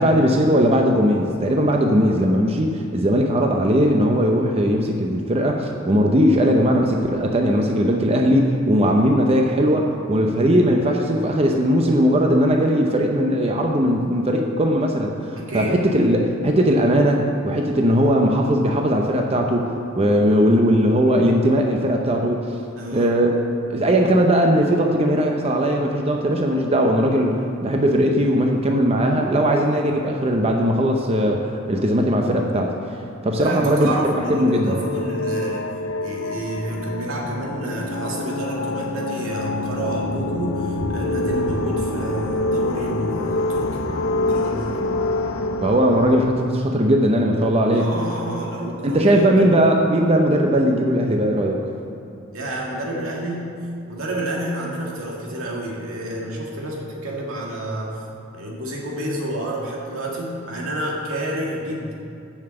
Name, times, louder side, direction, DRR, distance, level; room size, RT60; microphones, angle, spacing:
voice 1, 0.0-22.5 22.9-23.3 23.7-32.7 33.2-34.8 45.6-47.9 48.8-51.6, equal, 30° right, 2 dB, 0.6 m, -19 dB
voice 2, 15.4-15.7 22.7-23.1 33.3-35.7 36.0-43.7 44.2-44.9 47.7-49.4 52.3-53.5 53.9-58.0 58.3-61.9, right 1 dB, 85° right, -3 dB, 2.0 m, -29 dB
sound 1, 33.7-46.3, left 2 dB, 80° left, 0.6 m, -26 dB
7.2 x 6.9 x 7.6 m, 2.5 s
head